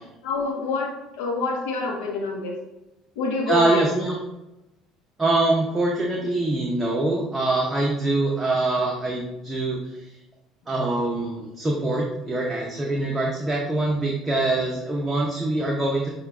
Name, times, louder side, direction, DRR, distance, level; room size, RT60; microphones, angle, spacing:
voice 1, 0.2-2.6 3.2-3.9, left 3 dB, 80° left, -1 dB, 0.7 m, -27 dB
voice 2, 3.5-4.2 5.2-10.0 10.7-16.1, right 2 dB, 20° right, -1 dB, 0.6 m, -24 dB
6.4 x 2.2 x 2.4 m, 0.94 s
supercardioid pair, 85°, 0 cm